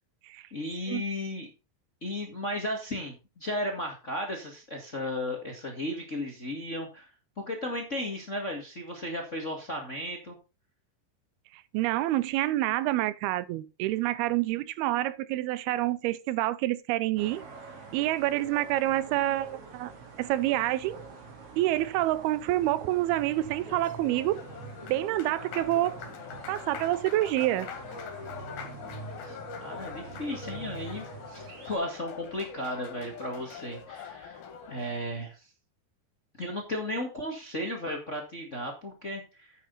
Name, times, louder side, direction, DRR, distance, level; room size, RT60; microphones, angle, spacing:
voice 1, 0.5-1.5 2.0-7.1 7.4-10.4 29.1-34.4 34.7-35.4 36.4-39.5, left 1 dB, 30° left, 1.4 m, -35 dB
voice 2, 11.5-17.4 17.9-19.9 20.2-21.0 21.6-24.4 24.9-26.0 26.5-27.7, right 15 dB, 90° right, 2.7 m, -27 dB
sound 1, 17.2-31.8, right 4 dB, 45° right, 2.6 m, -45 dB
Applause, 23.3-35.1, left 6 dB, 75° left, 3.7 m, -43 dB
9.6 x 9.2 x 4.0 m
omnidirectional pair, 4.4 m